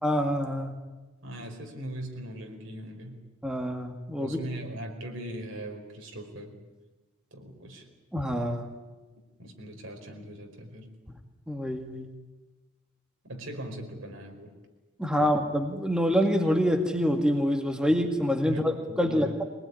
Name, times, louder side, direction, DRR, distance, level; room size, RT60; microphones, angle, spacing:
voice 1, 0.0-0.7 3.4-4.4 8.1-8.7 11.5-12.1 15.0-19.4, equal, 5° right, 3 dB, 2.1 m, -26 dB
voice 2, 1.2-3.2 4.2-6.5 7.3-7.9 9.4-10.9 13.2-14.5 15.2-15.3 17.9-18.0 18.4-19.3, right 1 dB, 75° right, 3 dB, 5.0 m, -40 dB
23.5 x 20.0 x 9.9 m, 1.2 s
head